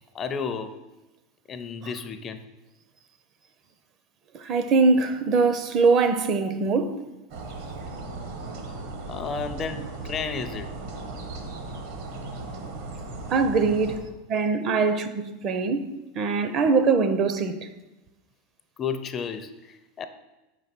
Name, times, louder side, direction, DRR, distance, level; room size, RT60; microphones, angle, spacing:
voice 1, 0.1-0.8 1.5-2.4 5.2-5.4 5.8-6.0 6.3-6.5 9.1-10.7 18.8-20.1, left 6 dB, 30° left, 0.4 m, -33 dB
voice 2, 4.3-7.0 13.3-15.9 16.1-17.7, right 4 dB, 40° right, 0.5 m, -22 dB
sound 1, 7.3-14.0, right 2 dB, 70° right, 1.1 m, -37 dB
4.9 x 4.0 x 5.9 m
supercardioid pair, 125°, 0 cm